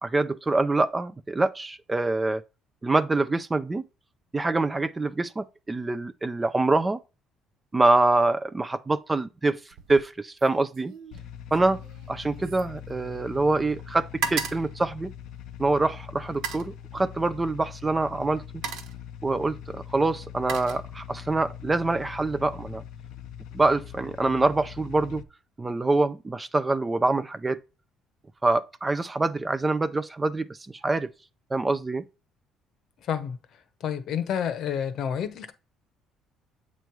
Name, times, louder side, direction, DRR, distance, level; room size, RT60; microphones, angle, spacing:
voice 1, 0.0-2.4 2.8-3.8 4.3-7.0 7.7-10.9 11.5-11.8 12.1-15.1 15.6-18.6 19.2-22.8 23.5-25.2 25.6-27.6 28.4-31.1 31.5-32.0, right 2 dB, 15° right, 0.3 m, -25 dB
sound 1, 9.7-10.1 10.4-13.5 13.8-15.7 16.3-16.8 17.8-18.0 18.4-19.1 19.9-21.3 21.7-22.1, right 6 dB, 75° right, 1.1 m, -37 dB
sound 2, 11.1-25.2, left 9 dB, 70° left, 0.5 m, -42 dB
voice 2, 33.0-33.4 33.8-35.5, left 8 dB, 50° left, 0.8 m, -29 dB
7.8 x 3.1 x 4.5 m
cardioid pair, 145°, 0 cm